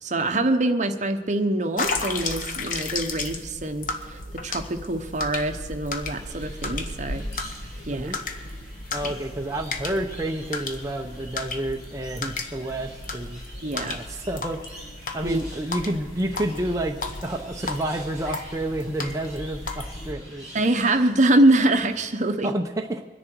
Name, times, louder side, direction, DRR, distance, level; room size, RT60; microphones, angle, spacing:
voice 1, 0.0-7.2 7.9-8.2 13.6-14.0 15.2-15.4 20.5-22.5, right 1 dB, 45° right, 7 dB, 1.0 m, -24 dB
sound 1, 1.8-20.1, left 3 dB, 50° left, 1.2 m, -34 dB
sound 2, 6.0-22.0, right 1 dB, 20° left, 6.3 m, -46 dB
voice 2, 8.9-13.4 13.7-14.8 15.1-20.5 22.4-23.0, right 1 dB, 20° right, 1 dB, 0.7 m, -30 dB
23.5 x 10.5 x 4.6 m, 1.4 s
head